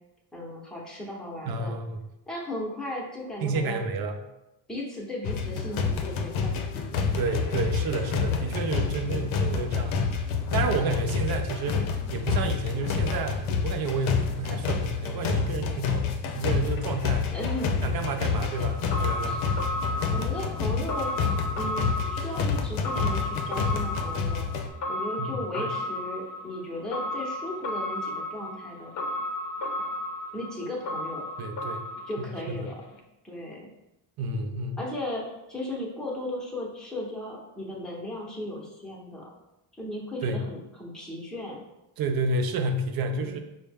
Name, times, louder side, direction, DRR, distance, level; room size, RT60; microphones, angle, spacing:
voice 1, 0.3-1.7 2.3-3.8 4.7-7.0 9.1-9.3 11.1-11.3 17.3-17.7 19.2-19.4 20.1-21.1 21.5-24.5 24.9-28.9 30.3-31.3 32.1-32.7 33.2-33.6 34.8-39.3 39.8-41.6 43.1-43.4, left 1 dB, ahead, -3 dB, 0.7 m, -36 dB
voice 2, 1.5-2.0 3.4-4.2 7.1-10.2 10.5-17.3 17.8-19.4 25.2-25.7 31.4-31.9 32.5-32.6 34.2-34.8 40.2-40.4 42.0-43.4, right 3 dB, 50° right, 6 dB, 0.5 m, -30 dB
sound 1, 5.2-24.7, left 5 dB, 90° left, 0.6 m, -28 dB
sound 2, 18.5-32.7 33.0-33.1, left 1 dB, 40° left, 0.6 m, -34 dB
5.3 x 2.1 x 3.4 m, 0.91 s
wide cardioid pair, 155°, 46 cm